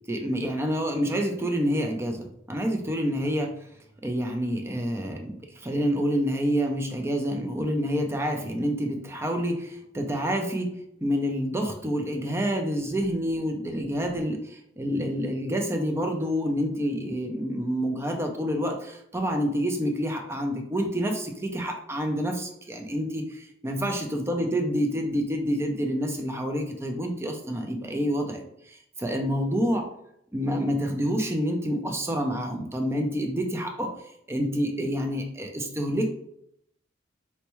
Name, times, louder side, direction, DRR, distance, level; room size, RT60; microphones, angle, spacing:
voice 1, 0.1-3.5 4.0-10.7 11.0-29.8 30.3-33.9 34.3-36.0, equal, 15° right, 3 dB, 0.4 m, -28 dB
4.4 x 2.1 x 3.0 m, 0.74 s
head